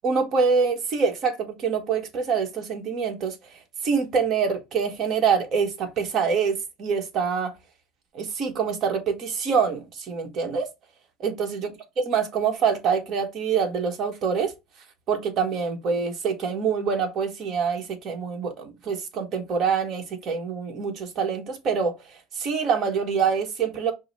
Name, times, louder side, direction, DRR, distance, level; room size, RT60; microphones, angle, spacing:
voice 1, 0.0-3.4 3.8-7.5 8.1-10.7 11.2-11.7 12.1-14.5 15.1-21.9 22.4-23.9, right 6 dB, 45° right, 1.3 m, -25 dB
5.3 x 2.1 x 4.0 m
supercardioid pair, 130°, 0 cm